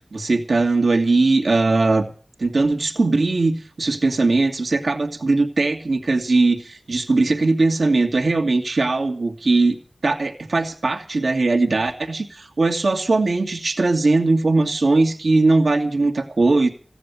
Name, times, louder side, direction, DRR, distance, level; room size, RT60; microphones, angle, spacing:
voice 1, 0.1-2.1 2.4-9.8 10.0-16.7, right 3 dB, 90° right, 4 dB, 1.9 m, -19 dB
15.5 x 10.0 x 8.2 m, 0.40 s
wide cardioid pair, 45°, 0 cm